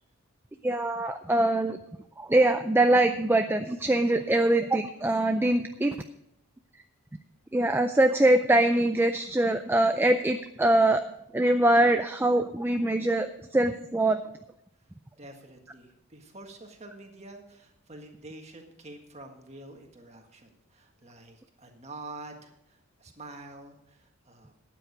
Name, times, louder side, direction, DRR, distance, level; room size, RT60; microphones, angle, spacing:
voice 1, 0.6-1.8 2.2-6.0 7.5-11.0 11.3-13.3 13.5-14.2, right 1 dB, 10° right, 7 dB, 0.3 m, -23 dB
voice 2, 15.2-24.6, right 2 dB, 30° right, 3 dB, 1.6 m, -47 dB
12.5 x 9.3 x 5.1 m, 0.78 s
head